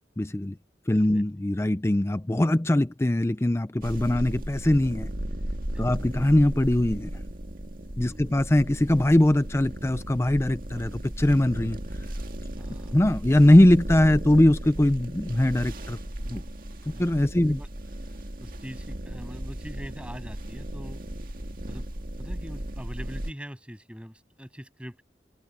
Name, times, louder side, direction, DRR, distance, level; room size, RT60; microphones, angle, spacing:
voice 1, 0.2-0.5 0.9-5.1 5.8-7.1 8.0-11.8 12.9-16.0 16.3-16.4 17.0-17.6, left 1 dB, 15° left, 0.4 m, -21 dB
voice 2, 0.9-1.2 4.1-4.3 5.7-5.8 8.0-8.4 12.6-13.0 16.9-17.0 17.4-17.7 18.4-21.0 21.6-25.0, equal, 5° right, 7.6 m, -43 dB
sound 1, 3.8-23.3, right 1 dB, 50° right, 2.1 m, -36 dB
head